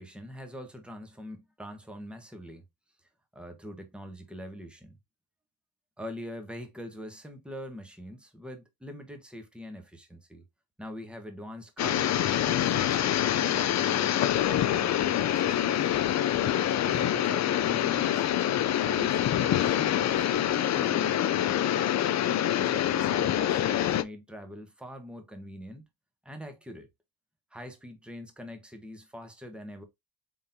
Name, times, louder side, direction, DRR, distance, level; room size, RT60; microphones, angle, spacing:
voice 1, 0.0-2.6 3.3-5.0 6.0-10.4 10.8-14.1 14.5-15.9 16.4-18.5 18.8-22.0 22.6-25.9 26.2-26.9 27.5-29.8, equal, ahead, 1.2 m, -43 dB
sound 1, 11.8-24.0, left 11 dB, 35° left, 0.4 m, -26 dB
3.7 x 3.6 x 2.7 m
supercardioid pair, 60°, 49 cm